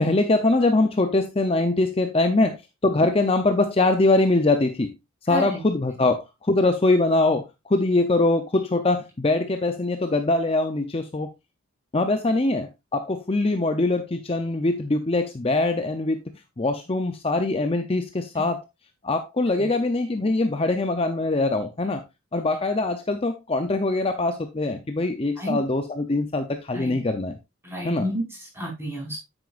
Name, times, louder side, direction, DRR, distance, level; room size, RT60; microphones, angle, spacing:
voice 1, 0.0-4.9 5.3-11.3 11.9-16.2 16.6-18.6 19.0-22.0 22.3-27.4 27.8-28.0, left 2 dB, 25° left, 0.6 m, -23 dB
voice 2, 5.3-5.6 19.6-19.7 25.4-25.6 26.7-27.0 27.6-29.2, equal, 10° right, 5.0 m, -31 dB
9.4 x 8.8 x 2.5 m
head